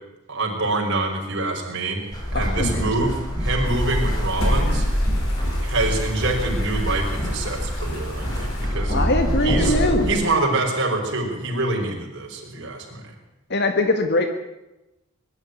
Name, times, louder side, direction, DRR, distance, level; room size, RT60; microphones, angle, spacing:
voice 1, 0.3-2.0 2.3-4.8 5.6-9.0 9.4-9.7 10.1-13.1, right 2 dB, 55° right, 0 dB, 5.7 m, -25 dB
sound 1, 2.1-10.2, equal, 20° left, 5.0 m, -24 dB
voice 2, 2.4-3.1 8.9-10.1 13.5-14.3, left 2 dB, 50° left, 6 dB, 1.6 m, -22 dB
sound 2, 3.6-8.7, left 1 dB, 80° left, 6.0 m, -39 dB
21.5 x 12.5 x 9.7 m, 0.95 s
head